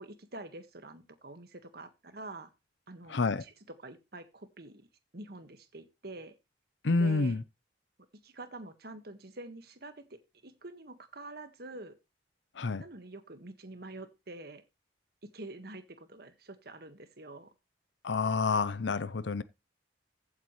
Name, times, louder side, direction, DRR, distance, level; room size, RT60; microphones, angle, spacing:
voice 1, 0.0-2.5 2.9-4.9 5.1-6.3 7.0-7.4 8.2-12.0 12.8-14.6 15.2-17.5, right 2 dB, 60° right, 1.6 m, -46 dB
voice 2, 3.1-3.4 6.8-7.4 12.6-12.8 18.0-19.4, left 4 dB, 80° left, 0.7 m, -28 dB
15.0 x 8.2 x 3.2 m
head